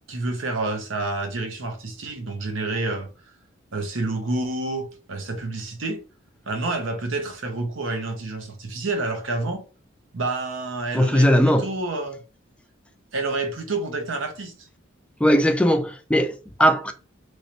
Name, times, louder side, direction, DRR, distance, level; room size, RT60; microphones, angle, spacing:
voice 1, 0.1-3.1 3.7-6.0 6.5-9.6 10.1-12.2 13.1-14.5, right 2 dB, 85° right, 0.8 m, -28 dB
voice 2, 10.9-11.7 15.2-16.9, equal, 5° left, 0.4 m, -19 dB
3.1 x 3.1 x 2.8 m
head